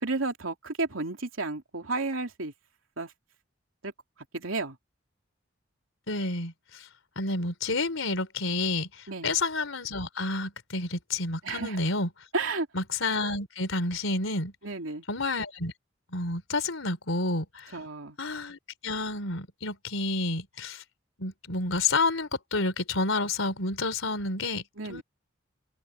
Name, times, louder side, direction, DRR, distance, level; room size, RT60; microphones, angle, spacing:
voice 1, 0.0-2.5 3.0-3.1 3.8-3.9 4.3-4.8 9.1-9.3 11.4-11.8 12.3-12.7 14.6-15.0 17.7-18.2 24.8-25.0, right 3 dB, 85° right, 3.1 m, -32 dB
voice 2, 6.1-6.8 7.2-8.9 9.2-12.1 12.7-14.5 15.1-15.7 16.1-17.7 18.2-20.8 21.2-24.6 24.9-25.0, left 3 dB, 80° left, 3.9 m, -29 dB
open air
head